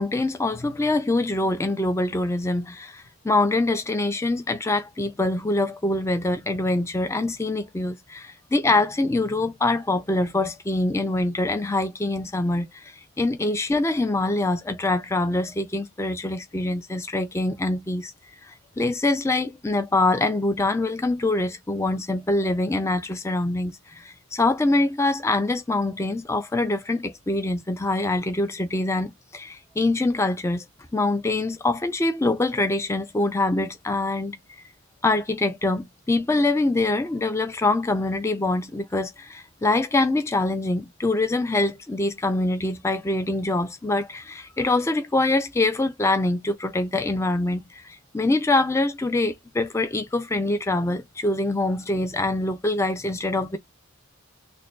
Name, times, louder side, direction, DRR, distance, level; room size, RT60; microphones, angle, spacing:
voice 1, 0.0-18.1 18.4-30.6 30.9-34.4 35.0-53.6, left 2 dB, 10° left, 0.4 m, -24 dB
6.2 x 2.1 x 2.3 m
head